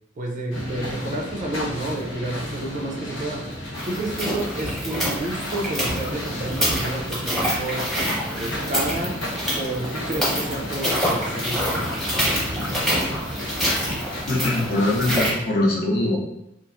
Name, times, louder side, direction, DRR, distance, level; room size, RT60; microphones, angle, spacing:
voice 1, 0.2-7.9 8.4-9.2 9.6-11.7, right 2 dB, 40° right, 1 dB, 0.4 m, -30 dB
sound 1, 0.5-15.3, left 1 dB, 85° left, 0.9 m, -34 dB
sound 2, 3.7-15.3, equal, ahead, 0.7 m, -26 dB
voice 2, 14.3-16.2, left 2 dB, 50° left, -3 dB, 0.6 m, -22 dB
2.9 x 2.4 x 2.4 m, 0.82 s
head